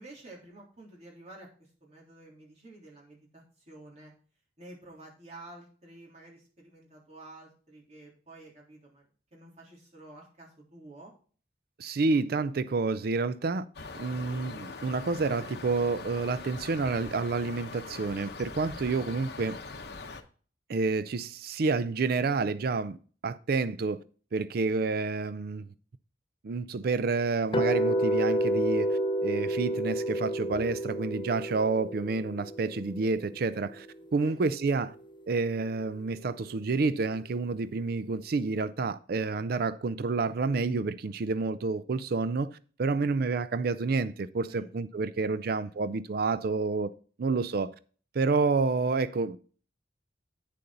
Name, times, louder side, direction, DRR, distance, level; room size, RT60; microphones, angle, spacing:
voice 1, 0.0-4.1 4.6-9.1 9.3-11.1 18.9-19.1 34.2-34.4 44.5-44.7 45.3-45.8, right 2 dB, 40° right, 3.5 m, -50 dB
voice 2, 11.8-13.6 13.9-19.6 20.7-23.0 23.2-24.0 24.3-25.6 26.4-33.9 34.1-34.9 35.3-46.9 47.2-47.7 48.1-49.4, right 4 dB, 55° right, 0.4 m, -29 dB
sound 1, 13.7-20.2, left 4 dB, 60° left, 1.0 m, -42 dB
sound 2, 27.5-33.6, right 1 dB, 25° left, 0.7 m, -30 dB
9.3 x 6.8 x 3.9 m
head